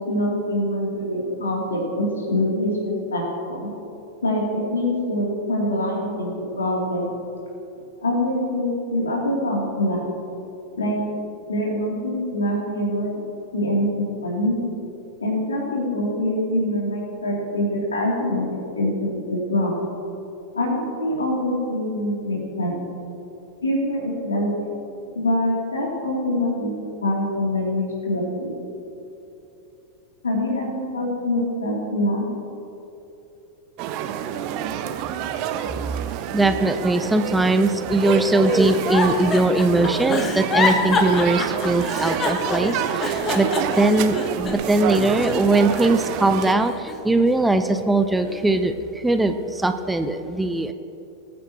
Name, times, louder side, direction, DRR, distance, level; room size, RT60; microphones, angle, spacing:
voice 1, 0.0-3.7 4.2-7.1 8.0-10.1 10.8-11.0 11.5-13.2 13.5-14.6 15.2-19.7 20.5-22.8 23.6-24.7 25.1-26.7 27.0-28.6 30.2-32.3, left 1 dB, 70° left, -2 dB, 3.0 m, -24 dB
sound 1, 33.8-46.5, right 9 dB, 45° right, 0.7 m, -28 dB
voice 2, 36.3-43.5 43.8-50.7, right 2 dB, 5° right, 8 dB, 0.5 m, -20 dB
Giggle, 38.4-44.8 45.2-46.2 46.6-47.7 48.2-48.6, left 3 dB, 25° left, 1.3 m, -27 dB
21.0 x 9.3 x 3.0 m, 2.9 s
figure-of-eight pair, 90°, 0 cm